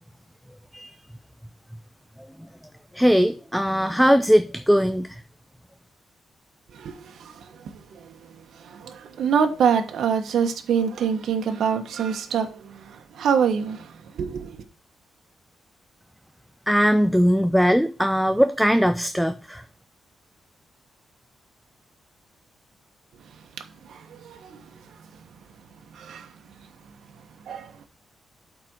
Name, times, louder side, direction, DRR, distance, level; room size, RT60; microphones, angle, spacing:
voice 1, 2.9-5.2 16.7-19.6, equal, ahead, 0.4 m, -20 dB
voice 2, 6.7-7.4 7.9-8.2 8.6-13.9 14.1-14.6 23.8-24.6 25.9-26.3 27.5-27.7, right 7 dB, 80° right, 1.4 m, -25 dB
8.4 x 4.2 x 6.4 m
wide cardioid pair, 170°, 0 cm